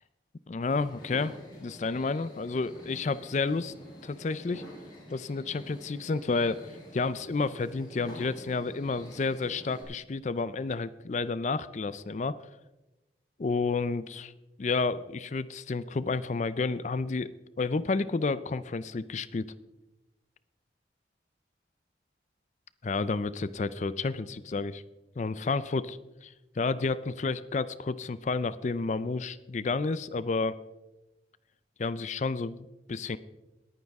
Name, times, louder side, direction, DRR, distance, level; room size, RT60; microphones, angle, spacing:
voice 1, 0.5-1.3 1.6-3.7 4.0-4.6 5.1-12.4 13.4-14.3 14.6-19.5 22.8-24.8 25.2-30.6 31.8-33.2, left 4 dB, 40° left, 16 dB, 0.4 m, -31 dB
sound 1, 0.7-9.8, equal, 25° left, 5.3 m, -48 dB
20.5 x 9.4 x 3.6 m, 1.0 s
head